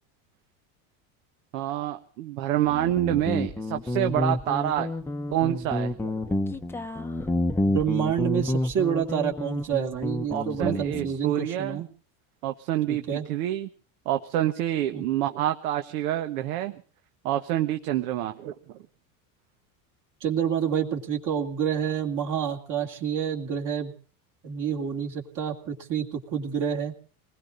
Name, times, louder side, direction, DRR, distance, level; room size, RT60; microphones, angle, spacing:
voice 1, 1.5-4.9 5.3-6.1 10.3-11.8 12.4-13.7 14.0-16.8 17.2-18.5, right 12 dB, 80° right, 7 dB, 1.3 m, -27 dB
Guitar, 2.7-11.1, left 1 dB, 5° left, 0.8 m, -29 dB
voice 2, 7.7-11.9 12.9-13.3 14.9-15.0 20.2-23.9 24.4-27.0, right 8 dB, 45° right, 1 dB, 2.6 m, -28 dB
28.0 x 20.0 x 2.6 m, 0.40 s
supercardioid pair, 130°, 43 cm